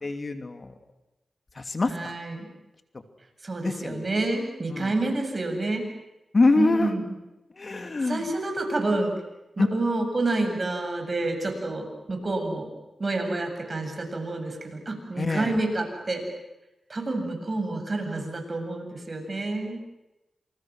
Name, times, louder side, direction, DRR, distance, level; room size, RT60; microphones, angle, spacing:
voice 1, 0.0-0.7 1.5-2.1 3.6-4.0 4.7-4.9 6.3-6.9 7.6-8.3 9.6-9.7 15.2-15.6, left 3 dB, 45° left, 6 dB, 2.8 m, -25 dB
voice 2, 1.9-2.5 3.4-5.8 6.5-7.1 8.1-9.1 9.6-12.7 13.0-16.2 16.9-19.8, right 2 dB, 45° right, 4 dB, 7.9 m, -28 dB
29.0 x 27.5 x 6.4 m, 0.95 s
cardioid pair, 55°, 0 cm